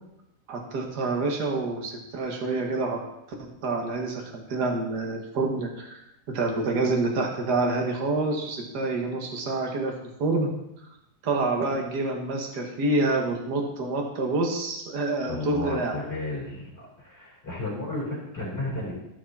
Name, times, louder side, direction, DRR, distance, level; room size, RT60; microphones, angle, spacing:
voice 1, 0.5-3.0 3.4-6.0 6.3-9.9 10.2-10.5 11.2-16.0, right 2 dB, 45° right, 1 dB, 1.4 m, -27 dB
voice 2, 15.3-16.7 17.0-18.9, left 2 dB, 15° left, -8 dB, 4.7 m, -33 dB
15.0 x 6.2 x 4.3 m, 0.86 s
omnidirectional pair, 4.1 m